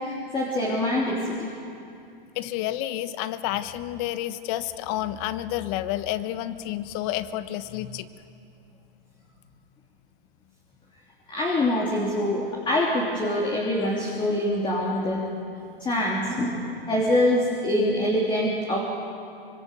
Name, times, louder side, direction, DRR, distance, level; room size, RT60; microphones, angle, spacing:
voice 1, 0.0-1.5 11.3-15.3 15.8-18.8, left 1 dB, 15° left, -3 dB, 3.2 m, -25 dB
voice 2, 2.3-8.1, left 13 dB, 40° left, 12 dB, 1.2 m, -30 dB
25.5 x 23.5 x 6.9 m, 2.6 s
hypercardioid pair, 130°, 29 cm